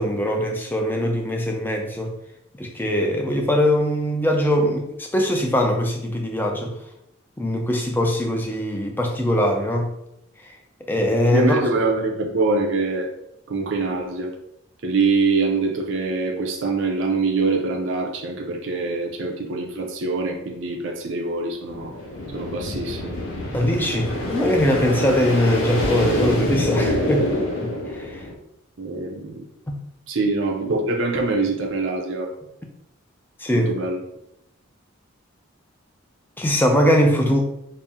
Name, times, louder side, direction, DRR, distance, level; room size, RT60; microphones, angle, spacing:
voice 1, 0.0-2.1 2.6-6.7 7.4-9.9 10.9-11.6 23.5-27.3 27.6-28.2 29.7-29.8 33.4-33.7 36.4-37.4, equal, 10° left, 0.4 m, -21 dB
voice 2, 11.3-13.1 13.5-14.3 14.8-21.9 22.3-23.2 28.8-29.4 30.1-32.3 33.5-34.0, right 3 dB, 60° right, 0.5 m, -24 dB
sound 1, 21.7-28.3, left 1 dB, 70° left, 0.8 m, -26 dB
4.2 x 2.0 x 3.6 m
head